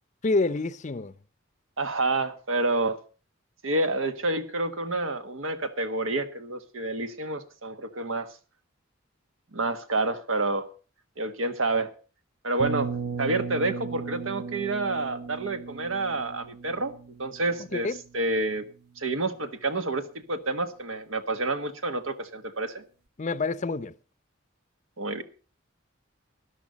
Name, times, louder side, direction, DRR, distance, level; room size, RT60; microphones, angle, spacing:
voice 1, 0.2-1.1 17.6-18.0 23.2-23.9, left 3 dB, 35° left, 0.6 m, -27 dB
voice 2, 1.8-3.0 3.6-8.3 9.5-10.7 11.2-11.9 12.4-12.9 13.2-17.9 18.1-18.6 19.0-22.8 25.0-25.2, right 2 dB, 85° right, 1.5 m, -28 dB
sound 1, 12.6-18.4, right 5 dB, 55° right, 0.9 m, -36 dB
13.5 x 11.0 x 5.2 m
head